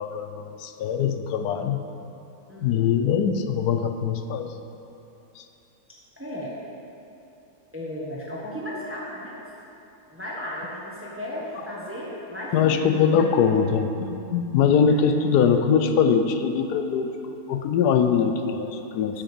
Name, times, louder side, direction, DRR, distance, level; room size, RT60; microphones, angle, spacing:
voice 1, 0.0-1.8 2.6-4.5 5.4-5.5 12.5-17.1 17.5-19.2, left 6 dB, 90° left, 7 dB, 1.2 m, -22 dB
voice 2, 2.5-2.8 6.2-6.5 7.7-9.4 10.1-13.2, left 1 dB, 10° right, -6 dB, 1.1 m, -34 dB
8.4 x 5.2 x 6.7 m, 2.9 s
omnidirectional pair, 1.6 m